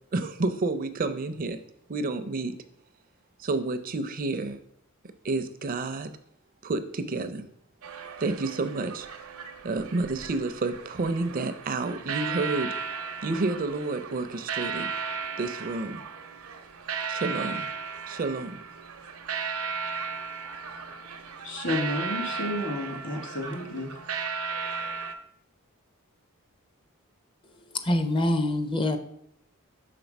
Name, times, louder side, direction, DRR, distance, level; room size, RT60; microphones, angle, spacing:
voice 1, 0.1-1.6 1.9-2.5 3.4-4.6 5.2-6.1 6.6-7.5 8.2-9.1 9.6-12.7 13.2-14.9 15.4-16.0 17.1-17.7 18.1-18.6, right 3 dB, 40° right, 10 dB, 0.5 m, -30 dB
sound 1, 7.8-25.1, right 5 dB, 80° right, 0.7 m, -36 dB
voice 2, 21.4-23.9, left 1 dB, 55° left, 1 dB, 1.7 m, -31 dB
voice 3, 27.8-29.0, left 1 dB, 25° left, 8 dB, 0.5 m, -24 dB
5.9 x 3.7 x 5.2 m, 0.72 s
head